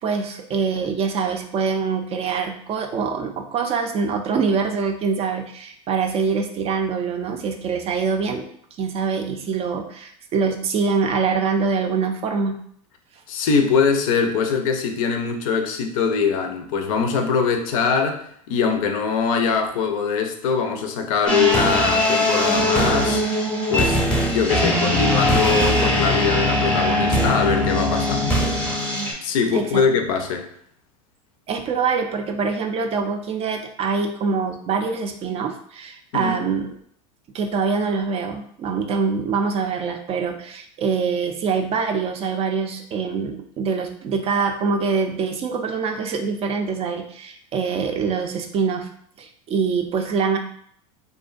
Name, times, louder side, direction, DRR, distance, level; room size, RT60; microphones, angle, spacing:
voice 1, 0.0-8.4 8.8-12.6 29.5-29.8 31.5-36.7 37.3-48.9 49.2-50.4, right 5 dB, 35° right, 5 dB, 0.3 m, -24 dB
voice 2, 13.3-23.2 23.7-24.0 24.3-28.4 29.2-30.5 36.1-36.4, left 6 dB, 70° left, 5 dB, 0.4 m, -22 dB
sound 1, 21.3-29.1, equal, 5° left, 0.7 m, -21 dB
2.5 x 2.1 x 2.4 m, 0.65 s
hypercardioid pair, 95°, 18 cm